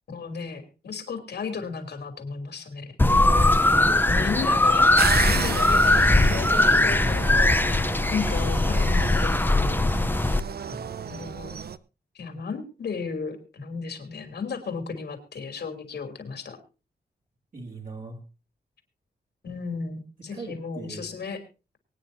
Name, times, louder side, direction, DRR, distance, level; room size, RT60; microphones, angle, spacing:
voice 1, 0.1-3.8 4.1-7.8 8.1-9.8 11.1-11.6 12.1-16.6 19.4-21.4, left 5 dB, 80° left, 6 dB, 3.2 m, -34 dB
sound 1, 3.0-10.4, left 2 dB, 10° left, 0.7 m, -20 dB
voice 2, 3.3-4.1 10.6-11.2 17.5-18.2 20.3-21.1, right 3 dB, 50° right, -1 dB, 3.3 m, -39 dB
sound 2, 5.0-11.8, right 7 dB, 70° right, 0.7 m, -33 dB
23.5 x 9.5 x 2.7 m, 0.32 s
wide cardioid pair, 105°, 17 cm